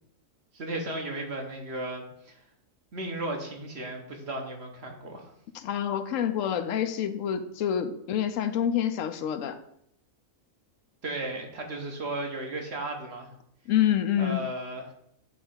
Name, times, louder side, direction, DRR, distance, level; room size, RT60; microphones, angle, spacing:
voice 1, 0.5-2.4 2.9-5.3 11.0-13.3 14.2-14.8, right 1 dB, 55° right, 2 dB, 1.4 m, -35 dB
voice 2, 5.5-9.6 13.7-14.4, left 10 dB, 80° left, 10 dB, 1.0 m, -27 dB
7.8 x 3.4 x 5.6 m, 0.73 s
omnidirectional pair, 1.4 m